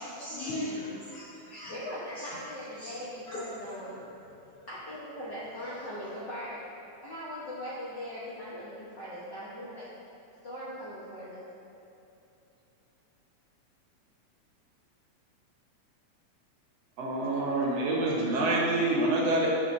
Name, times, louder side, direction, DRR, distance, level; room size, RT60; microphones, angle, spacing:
voice 1, 0.0-1.7 2.8-2.9 3.3-3.4 5.6-5.7, left 1 dB, 70° left, -7 dB, 1.4 m, -38 dB
voice 2, 1.7-4.0 4.7-6.6 7.0-9.9 10.4-11.5, equal, 90° left, -8 dB, 0.9 m, -40 dB
voice 3, 17.0-19.7, right 2 dB, 65° right, -3 dB, 1.8 m, -27 dB
10.0 x 6.9 x 2.6 m, 2.9 s
omnidirectional pair, 3.6 m